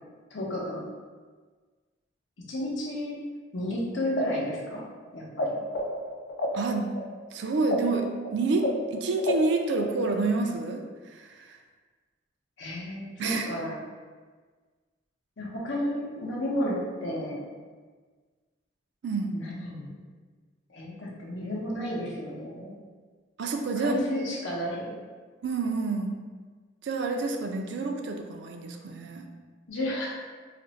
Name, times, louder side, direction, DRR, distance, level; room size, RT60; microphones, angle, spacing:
voice 1, 0.3-0.9 2.5-3.2 3.5-5.5 12.6-13.8 15.4-17.4 19.3-20.0 20.7-22.7 23.8-24.9 29.7-30.1, left 1 dB, 80° left, -4 dB, 0.7 m, -32 dB
sound 1, 4.1-5.4 5.7-10.2, left 1 dB, 55° left, 0.4 m, -31 dB
voice 2, 6.5-6.9 7.3-11.6 13.2-13.5 19.0-19.4 23.4-24.2 25.4-26.2 26.8-29.3, right 3 dB, 60° right, 4 dB, 0.3 m, -28 dB
2.5 x 2.0 x 3.8 m, 1.4 s
head